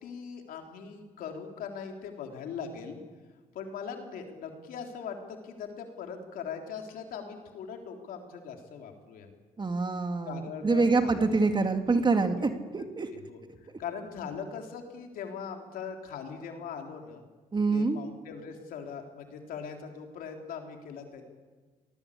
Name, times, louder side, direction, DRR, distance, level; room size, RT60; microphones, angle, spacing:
voice 1, 0.0-3.0 3.5-9.3 10.3-11.3 12.2-12.5 13.3-17.2 17.7-21.3, left 6 dB, 80° left, 3 dB, 3.7 m, -40 dB
voice 2, 9.6-13.1 17.5-18.0, right 3 dB, 30° right, 6 dB, 2.3 m, -26 dB
27.0 x 19.5 x 8.6 m, 1.4 s
cardioid pair, 75°, 15 cm